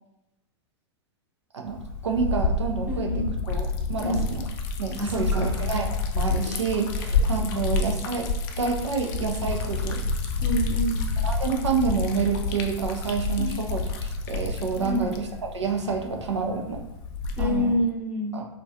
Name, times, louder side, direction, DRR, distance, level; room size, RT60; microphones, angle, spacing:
voice 1, 1.5-4.4 4.8-8.3 8.6-10.0 11.2-16.8 17.4-17.8 18.3-18.5, right 5 dB, 90° right, 2 dB, 0.5 m, -28 dB
Liquid, 1.7-17.8, left 3 dB, 50° left, 0.4 m, -29 dB
voice 2, 2.9-3.3 4.0-4.3 5.0-5.5 7.3-7.7 10.4-11.0 13.4-13.5 14.8-15.1 17.4-18.4, left 1 dB, 10° right, -2 dB, 0.6 m, -28 dB
2.3 x 2.2 x 2.6 m, 0.91 s
hypercardioid pair, 105°, 15 cm